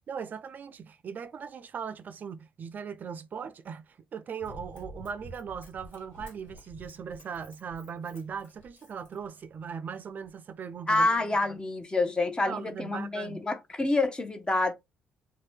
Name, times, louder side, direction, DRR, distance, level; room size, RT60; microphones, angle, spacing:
voice 1, 0.1-11.1 12.5-13.4, right 6 dB, 50° right, 0.3 m, -39 dB
Run, 4.4-9.7 10.2-10.3, equal, 75° left, 1.1 m, -49 dB
voice 2, 10.9-14.7, left 2 dB, 20° left, 0.8 m, -27 dB
2.6 x 2.2 x 3.3 m
supercardioid pair, 55°, 4 cm